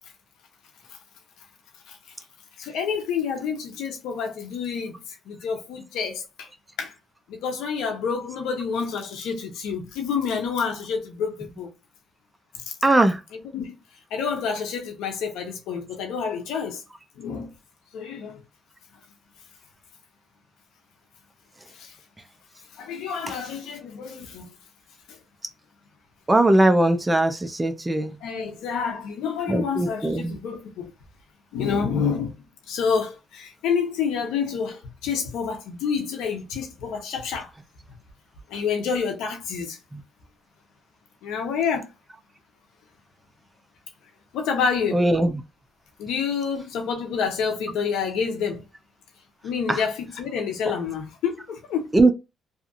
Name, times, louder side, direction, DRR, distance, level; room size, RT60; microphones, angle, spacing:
voice 1, 2.6-6.5 6.8-6.9 7.3-11.7 12.5-12.8 13.3-13.8 14.1-16.8 17.2-17.5 17.9-18.4 21.7-22.0 22.8-24.5 28.2-30.9 31.5-32.3 32.7-37.5 38.5-39.8 41.2-41.9 44.3-45.0 46.0-48.6 49.4-51.9, left 6 dB, 90° left, 0.7 m, -28 dB
voice 2, 12.8-13.2 26.3-28.1 29.5-30.4 44.9-45.3 49.7-49.8 51.9-52.1, right 2 dB, 15° right, 0.5 m, -19 dB
2.7 x 2.5 x 2.4 m
cardioid pair, 90°, 0 cm